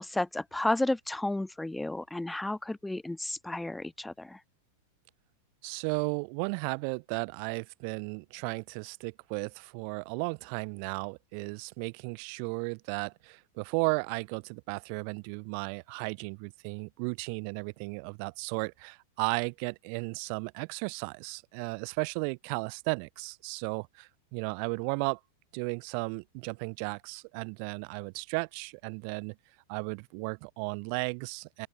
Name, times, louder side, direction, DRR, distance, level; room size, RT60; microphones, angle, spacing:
voice 1, 0.0-4.4, left 2 dB, 5° left, 1.4 m, -32 dB
voice 2, 5.6-25.2 25.5-29.3 29.7-31.7, right 40 dB or more, 55° right, 3.3 m, -35 dB
open air
hypercardioid pair, 100°, 0 cm